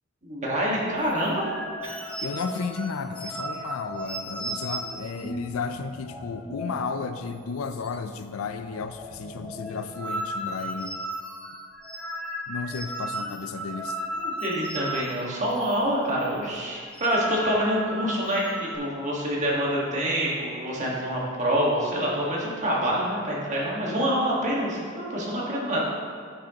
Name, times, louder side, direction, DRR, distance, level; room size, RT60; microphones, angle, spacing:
voice 1, 0.2-1.4 14.2-25.8, equal, 35° right, -5 dB, 1.6 m, -26 dB
sound 1, 1.0-6.9 7.2-7.4 7.6-8.2 8.5-15.8 16.1-16.3 16.8-18.8, right 1 dB, 5° left, 0.7 m, -36 dB
voice 2, 2.2-10.9 12.5-14.0, left 5 dB, 80° left, 9 dB, 0.4 m, -33 dB
9.8 x 6.2 x 2.9 m, 2.1 s
head